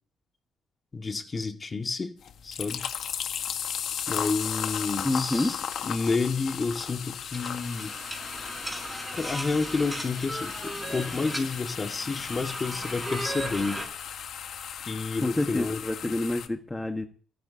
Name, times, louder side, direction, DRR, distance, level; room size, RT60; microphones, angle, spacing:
voice 1, 0.9-2.1 2.4-2.9 4.1-7.9 9.1-13.9 14.8-16.1, left 4 dB, 30° left, 1.9 m, -30 dB
sound 1, 2.2-16.5, left 8 dB, 70° left, 1.6 m, -36 dB
voice 2, 5.0-5.5 15.2-17.1, left 2 dB, 15° left, 1.6 m, -28 dB
sound 2, 7.3-13.9, right 1 dB, 5° right, 5.6 m, -37 dB
28.5 x 10.5 x 2.9 m
cardioid pair, 90°, 0 cm